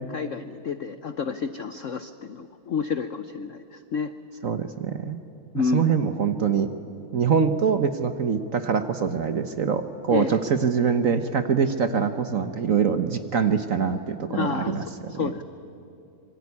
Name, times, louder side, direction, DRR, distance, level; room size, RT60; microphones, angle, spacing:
voice 1, 0.1-4.1 5.5-5.9 10.1-10.4 14.3-14.7 15.1-15.4, left 5 dB, 70° left, 11 dB, 0.7 m, -29 dB
voice 2, 4.4-5.2 5.7-6.7 7.1-15.3, right 6 dB, 50° right, 9 dB, 1.1 m, -24 dB
26.0 x 23.5 x 9.7 m, 2.6 s
omnidirectional pair, 2.3 m